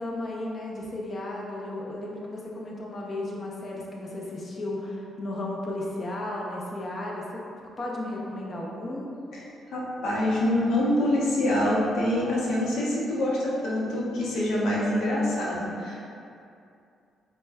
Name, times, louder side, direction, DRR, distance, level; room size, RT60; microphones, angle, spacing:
voice 1, 0.0-7.4 7.8-9.2, left 1 dB, 40° left, -3 dB, 0.6 m, -34 dB
voice 2, 9.7-16.1, left 1 dB, 75° left, -5 dB, 0.7 m, -25 dB
4.8 x 2.1 x 2.2 m, 2.5 s
cardioid pair, 90°, 0 cm